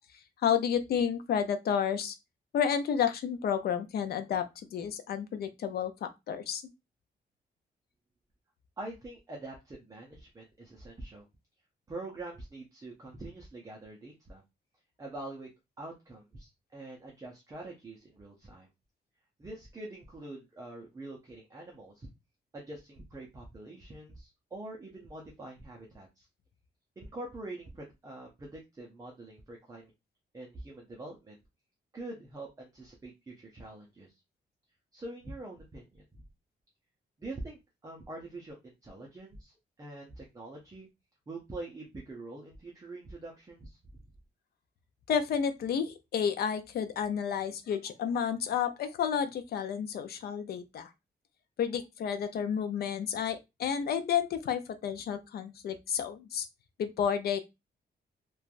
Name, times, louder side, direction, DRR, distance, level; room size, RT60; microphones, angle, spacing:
voice 1, 0.4-2.2 2.5-6.6 45.1-50.9 51.6-56.5 56.8-57.4, left 8 dB, 65° left, 0.4 m, -31 dB
voice 2, 8.8-11.3 11.9-14.4 15.0-15.5 15.8-18.7 19.4-22.1 22.5-26.3 27.0-29.9 30.3-31.4 31.9-34.1 34.9-36.2 37.2-40.9 41.3-43.8, right 2 dB, 20° right, 0.5 m, -45 dB
3.1 x 2.2 x 2.4 m
wide cardioid pair, 160°, 18 cm